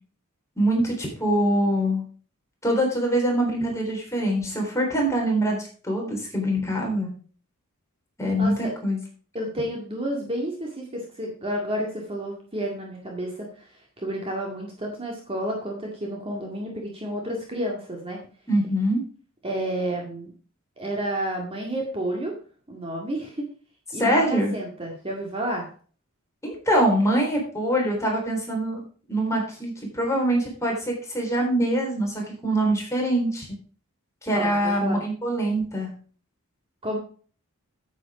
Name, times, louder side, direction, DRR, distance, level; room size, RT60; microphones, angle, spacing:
voice 1, 0.6-2.0 2.6-7.1 8.2-9.0 18.5-19.0 23.9-24.5 26.4-28.8 29.1-33.5 34.2-35.9, right 1 dB, 15° left, -1 dB, 3.7 m, -24 dB
voice 2, 8.4-8.7 9.3-18.2 19.4-20.3 20.8-22.3 22.7-23.4 23.9-25.7 34.3-34.5 34.8-35.0 36.8-37.0, right 1 dB, 25° right, 0 dB, 1.9 m, -30 dB
9.3 x 8.4 x 4.8 m, 0.42 s
head